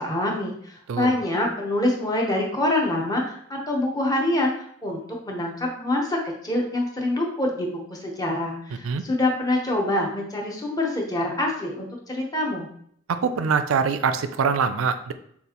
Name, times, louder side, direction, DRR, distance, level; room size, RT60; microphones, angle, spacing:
voice 1, 0.0-4.5 4.8-5.0 5.3-12.7, left 1 dB, 20° left, -1 dB, 0.9 m, -25 dB
voice 2, 13.1-15.1, right 6 dB, 90° right, 11 dB, 0.4 m, -23 dB
6.7 x 2.5 x 2.9 m, 0.67 s
head